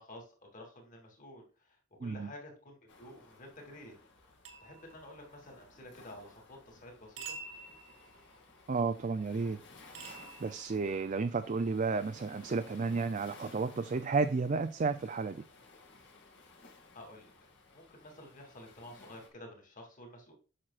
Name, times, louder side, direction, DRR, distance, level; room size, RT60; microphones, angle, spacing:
voice 1, 0.0-4.0 4.6-7.4 16.4-16.6 16.9-20.3, left 1 dB, 45° left, 2.8 m, -51 dB
Waves surf, 2.9-19.3, left 3 dB, 65° left, 2.3 m, -57 dB
sound 1, 4.4-5.7 7.2-8.6 9.9-11.2, right 4 dB, 85° right, 2.0 m, -48 dB
voice 2, 8.7-9.6 9.9-15.4, right 4 dB, 40° right, 0.4 m, -32 dB
8.7 x 6.3 x 2.5 m
head